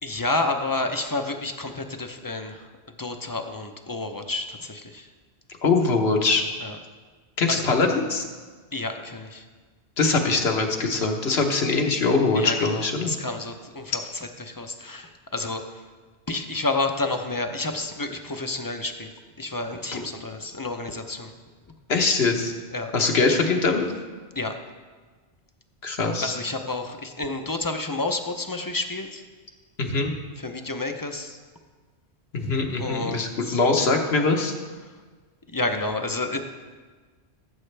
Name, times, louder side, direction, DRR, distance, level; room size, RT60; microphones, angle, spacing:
voice 1, 0.0-2.7 3.0-5.1 6.6-6.8 7.5-7.6 8.7-9.4 12.3-15.6 16.3-21.3 22.7-22.9 24.4-24.6 26.2-29.2 30.4-31.4 32.8-33.6 35.5-36.4, left 2 dB, 25° left, 5 dB, 0.5 m, -30 dB
voice 2, 5.6-6.4 7.4-8.2 10.0-13.1 19.9-20.0 21.9-22.5 22.9-23.9 25.8-26.3 29.8-30.1 32.3-34.5, left 3 dB, 70° left, 3 dB, 1.3 m, -22 dB
16.5 x 7.7 x 3.3 m, 1.4 s
omnidirectional pair, 1.1 m